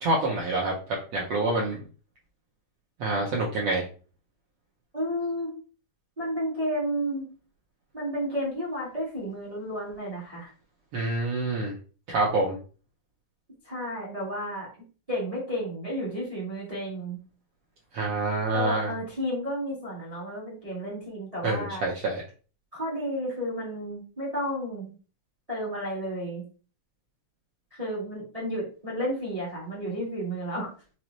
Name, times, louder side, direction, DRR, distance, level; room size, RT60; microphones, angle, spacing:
voice 1, 0.0-1.8 3.0-3.8 10.9-11.7 12.1-12.6 17.9-18.9 21.4-22.2, right 2 dB, 80° right, -3 dB, 1.3 m, -27 dB
voice 2, 4.9-5.5 6.2-7.3 7.9-10.5 13.6-14.7 15.1-17.2 18.5-21.8 22.7-24.9 25.5-26.4 27.7-30.7, equal, 60° right, -5 dB, 0.3 m, -32 dB
5.3 x 2.0 x 3.0 m, 0.37 s
omnidirectional pair, 3.5 m